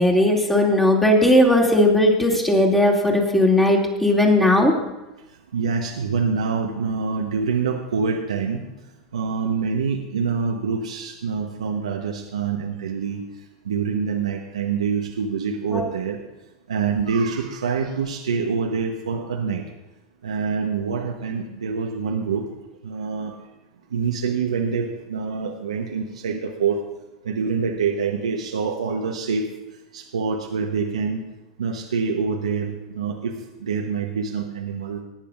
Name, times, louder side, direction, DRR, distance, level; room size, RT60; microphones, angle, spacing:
voice 1, 0.0-4.8 15.7-15.8, left 1 dB, 5° left, -1 dB, 2.6 m, -17 dB
voice 2, 5.5-8.7 9.1-13.2 13.6-16.2 16.7-19.6 20.2-22.5 22.8-23.3 23.9-26.8 27.2-29.5 29.9-31.2 31.6-35.0, right 5 dB, 90° right, 1 dB, 1.0 m, -25 dB
21.0 x 10.0 x 2.5 m, 1.0 s
hypercardioid pair, 95°, 3 cm